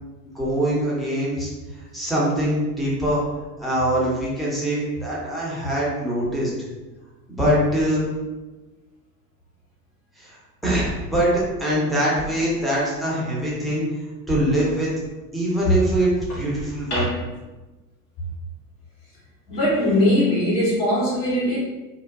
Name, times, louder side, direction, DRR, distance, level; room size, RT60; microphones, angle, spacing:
voice 1, 0.3-1.5 1.9-3.2 3.6-6.5 7.3-8.1 10.2-13.8 14.3-14.9 15.3-17.1, right 1 dB, ahead, -7 dB, 0.5 m, -23 dB
voice 2, 19.5-21.6, left 1 dB, 70° left, -7 dB, 1.5 m, -20 dB
2.7 x 2.1 x 2.4 m, 1.2 s
figure-of-eight pair, 80°, 49 cm